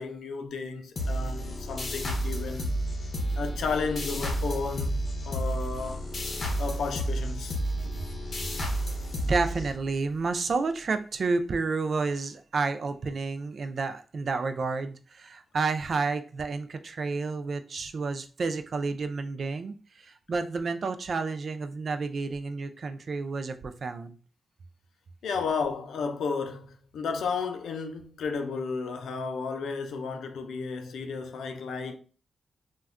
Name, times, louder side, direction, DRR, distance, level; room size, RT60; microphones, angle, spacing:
voice 1, 0.0-2.7 3.4-6.1 6.6-7.6 7.9-8.0 25.2-32.0, left 5 dB, 90° left, 0.4 m, -33 dB
sound 1, 0.9-10.2, equal, 55° left, 0.7 m, -31 dB
voice 2, 9.2-24.2, right 4 dB, 60° right, 0.3 m, -30 dB
2.2 x 2.1 x 3.5 m
cardioid pair, 75°, 0 cm